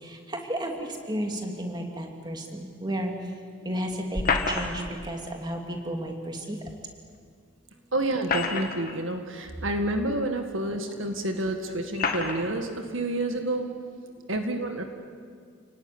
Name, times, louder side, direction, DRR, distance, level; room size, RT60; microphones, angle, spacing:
voice 1, 0.0-3.1 3.6-6.6, right 1 dB, 20° right, 2 dB, 2.7 m, -33 dB
sound 1, 4.1-5.0 6.7-6.8 8.0-9.0 9.8-9.9 10.9-11.0 11.9-12.5, left 4 dB, 40° left, 2.1 m, -28 dB
voice 2, 7.9-13.7 14.3-14.8, right 1 dB, 60° right, 5 dB, 1.9 m, -29 dB
29.5 x 18.5 x 9.9 m, 2.1 s
head